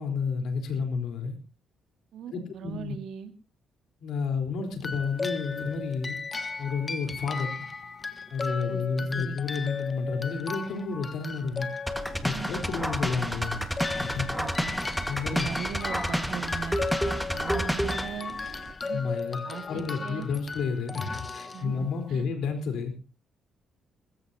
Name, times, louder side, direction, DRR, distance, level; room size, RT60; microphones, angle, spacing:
voice 1, 0.0-1.4 2.3-2.9 4.0-6.2 6.6-7.5 8.3-11.7 12.2-13.6 13.9-14.3 15.1-15.5 18.9-19.4 19.7-22.9, left 5 dB, 75° left, 5 dB, 4.1 m, -31 dB
voice 2, 2.1-3.3 8.7-9.4 12.3-12.5 14.4-14.7 15.3-16.8 17.3-18.4 18.8-19.0 19.4-20.3 21.5-22.2, right 8 dB, 75° right, 7 dB, 2.1 m, -39 dB
sound 1, 4.8-22.2, left 4 dB, 30° left, 1.4 m, -36 dB
sound 2, 11.9-18.1, equal, ahead, 1.7 m, -30 dB
sound 3, 12.0-18.7, right 4 dB, 45° right, 2.8 m, -47 dB
20.5 x 15.5 x 2.9 m, 0.32 s
cardioid pair, 90°, 0 cm